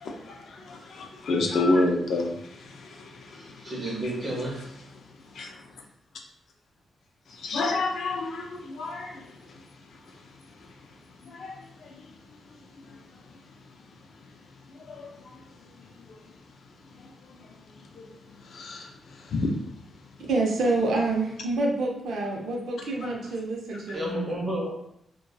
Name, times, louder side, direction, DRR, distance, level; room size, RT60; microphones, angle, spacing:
voice 1, 0.0-2.3 2.6-3.1 5.4-5.5 7.4-9.2 11.3-11.6 14.9-15.1 18.0-18.1 18.5-18.9 19.3-19.5, left 2 dB, 65° left, 2 dB, 0.4 m, -28 dB
voice 2, 3.4-4.7 23.9-24.7, right 1 dB, 30° right, -3 dB, 0.7 m, -31 dB
voice 3, 20.3-24.1, right 2 dB, 75° right, -1 dB, 0.6 m, -27 dB
2.6 x 2.2 x 2.3 m, 0.75 s
cardioid pair, 125°, 0 cm